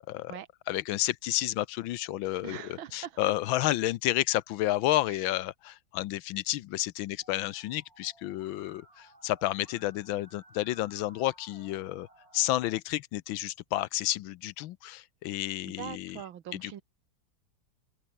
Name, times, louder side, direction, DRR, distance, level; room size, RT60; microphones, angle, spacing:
voice 1, 0.7-12.1 12.3-16.2 16.5-16.8, left 15 dB, 80° left, 1.5 m, -31 dB
voice 2, 2.4-3.2 5.1-5.2 15.6-16.8, right 10 dB, 80° right, 2.0 m, -42 dB
Musical instrument, 7.2-12.8, right 2 dB, 45° right, 8.6 m, -58 dB
open air
omnidirectional pair, 2.1 m